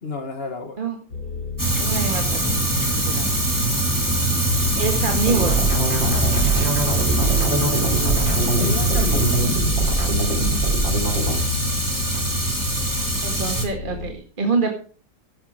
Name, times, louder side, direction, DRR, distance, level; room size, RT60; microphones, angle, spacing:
voice 1, 0.0-0.8 7.2-8.2 8.5-9.4, left 4 dB, 35° left, 1.8 m, -31 dB
sound 1, 1.1-14.1, left 5 dB, 85° left, 3.6 m, -31 dB
Fire, 1.6-13.7, right 2 dB, 10° right, 2.1 m, -23 dB
voice 2, 1.8-3.3 4.7-5.6 13.2-14.7, right 4 dB, 30° right, 1.9 m, -26 dB
sound 2, 5.2-11.4, right 3 dB, 85° right, 4.7 m, -23 dB
12.0 x 9.8 x 5.0 m
omnidirectional pair, 2.0 m